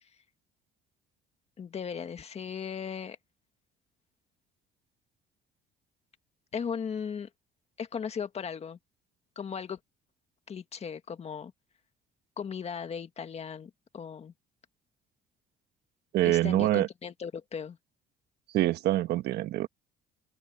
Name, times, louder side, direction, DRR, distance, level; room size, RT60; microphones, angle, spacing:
voice 1, 1.6-3.2 6.5-7.3 7.8-8.8 9.4-9.8 10.5-11.5 12.4-14.3 16.2-17.8, left 7 dB, 40° left, 1.8 m, -37 dB
voice 2, 16.1-16.9 18.5-19.7, right 14 dB, 75° right, 1.3 m, -25 dB
open air
cardioid pair, 110°, 17 cm